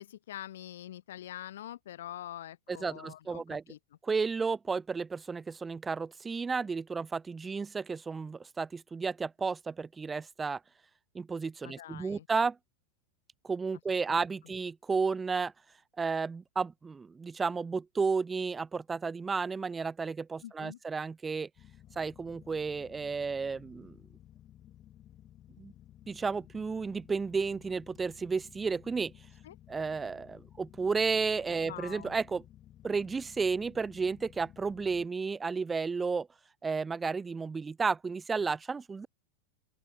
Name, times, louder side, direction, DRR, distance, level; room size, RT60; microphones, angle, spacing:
voice 1, 0.0-3.4 3.7-3.8 11.6-12.3 14.1-14.2 20.4-20.8 29.4-29.5 31.6-32.2, left 12 dB, 60° left, 1.1 m, -44 dB
voice 2, 2.7-3.6 4.0-10.6 11.1-12.6 13.4-15.5 16.0-21.5 22.0-24.0 25.6-25.7 26.1-29.1 29.7-32.4 32.8-36.3 36.6-39.1, right 4 dB, 15° right, 0.5 m, -32 dB
sound 1, 21.6-35.1, left 12 dB, 30° left, 2.3 m, -56 dB
open air
figure-of-eight pair, 90°, 0 cm